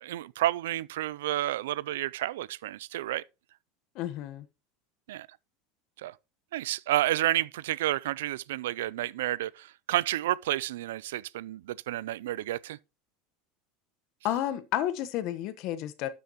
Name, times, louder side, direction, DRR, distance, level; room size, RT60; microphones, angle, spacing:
voice 1, 0.0-3.2 5.1-5.3 6.0-6.1 6.5-12.8, right 14 dB, 85° right, 0.4 m, -30 dB
voice 2, 3.9-4.5 14.2-16.1, left 12 dB, 55° left, 1.2 m, -31 dB
12.0 x 6.9 x 2.9 m
supercardioid pair, 110°, 0 cm